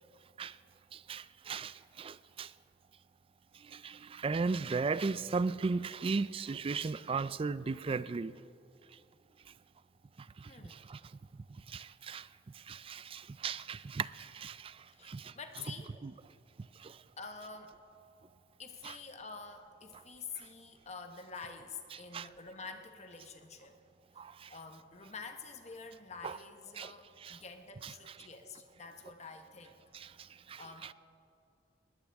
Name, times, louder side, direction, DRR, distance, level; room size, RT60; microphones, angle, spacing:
voice 1, 0.9-2.5 3.5-8.3 10.4-11.0 11.3-12.3 12.5-15.3 16.0-16.1 16.6-17.0 18.8-18.9 20.4-20.5 21.9-22.3 24.2-24.5 26.2-26.4 26.8-27.4 27.8-28.2 29.9-30.9, right 4 dB, 30° right, 0.3 m, -37 dB
voice 2, 10.4-10.8 14.9-16.0 17.2-17.8 18.6-23.8 24.5-29.7 30.6-30.9, left 4 dB, 35° left, 1.1 m, -48 dB
20.0 x 19.0 x 3.5 m
head